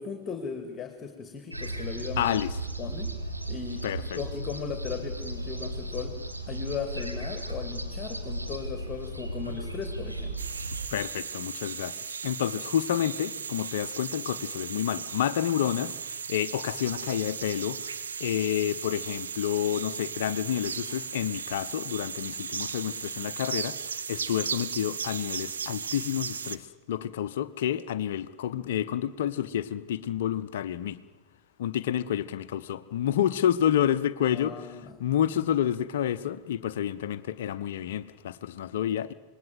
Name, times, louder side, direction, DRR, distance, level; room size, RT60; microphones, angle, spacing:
voice 1, 0.0-2.3 2.8-3.1 3.5-3.8 4.2-6.2 6.5-10.4 34.3-34.9, left 6 dB, 20° left, 2.4 m, -37 dB
sound 1, 1.5-10.9, right 1 dB, 85° right, 2.8 m, -35 dB
voice 2, 2.2-2.5 3.8-4.2 10.9-31.0 31.6-39.1, left 10 dB, 55° left, 0.8 m, -29 dB
sound 2, 10.4-26.6, right 6 dB, 70° right, 1.2 m, -36 dB
26.5 x 20.5 x 7.8 m
figure-of-eight pair, 90°, 0 cm